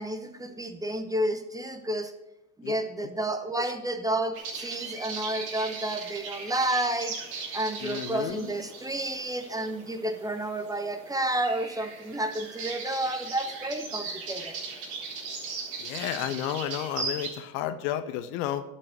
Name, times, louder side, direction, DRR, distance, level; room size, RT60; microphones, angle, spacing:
voice 1, 0.0-2.1 2.6-7.2 7.5-14.6, right 1 dB, 10° right, 8 dB, 0.9 m, -31 dB
sound 1, 4.3-17.3, right 4 dB, 75° right, 3.0 m, -38 dB
voice 2, 7.8-8.5 15.8-18.6, left 11 dB, 65° left, 12 dB, 0.9 m, -32 dB
11.0 x 5.6 x 6.6 m, 0.93 s
hypercardioid pair, 85°, 41 cm